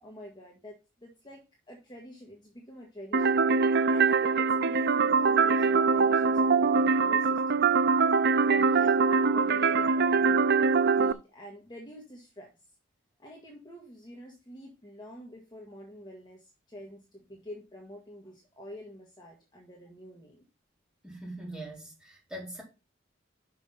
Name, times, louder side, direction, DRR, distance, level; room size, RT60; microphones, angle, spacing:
voice 1, 0.0-3.5 3.9-7.9 8.4-10.4 10.9-12.7 13.2-20.4, equal, 25° left, 1.6 m, -47 dB
sound 1, 3.1-11.1, right 5 dB, 55° right, 0.5 m, -23 dB
voice 2, 21.0-22.6, right 1 dB, 5° right, 4.2 m, -42 dB
6.0 x 5.9 x 5.7 m
head